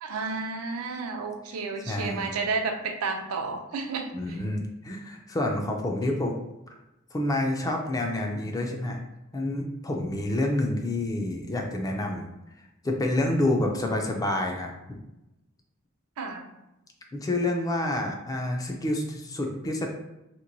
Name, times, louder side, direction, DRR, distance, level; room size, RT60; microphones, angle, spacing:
voice 1, 0.0-4.4 16.2-16.5, right 4 dB, 85° right, 4 dB, 0.4 m, -31 dB
voice 2, 1.9-2.3 4.1-6.4 7.1-9.0 9.3-12.3 12.8-15.0 17.1-19.9, left 1 dB, 15° left, 1 dB, 0.3 m, -28 dB
2.9 x 2.5 x 2.6 m, 0.94 s
head